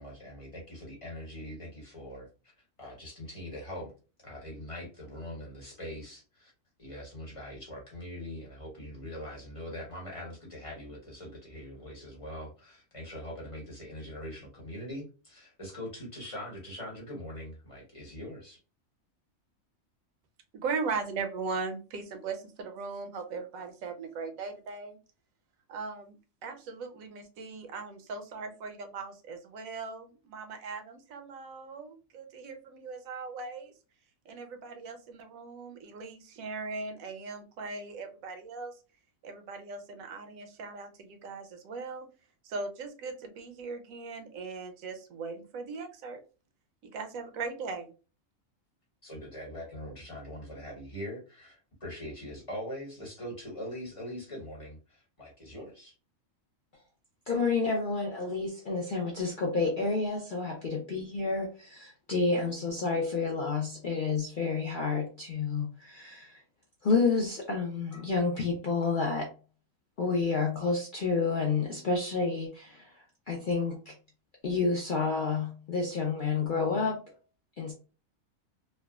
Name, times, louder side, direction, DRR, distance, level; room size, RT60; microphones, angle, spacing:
voice 1, 0.0-2.3 2.8-3.9 4.2-6.5 6.8-18.6 49.0-55.9, equal, 25° left, -3 dB, 0.9 m, -42 dB
voice 2, 20.5-25.0 25.7-26.2 26.4-33.7 34.3-38.7 39.2-42.1 42.4-46.2 46.8-47.9, right 4 dB, 90° right, 7 dB, 1.1 m, -39 dB
voice 3, 57.3-66.4 66.8-69.3 70.0-73.9 74.4-77.1 77.6-77.7, left 4 dB, 60° left, -1 dB, 0.5 m, -30 dB
3.3 x 2.1 x 2.2 m, 0.33 s
omnidirectional pair, 1.4 m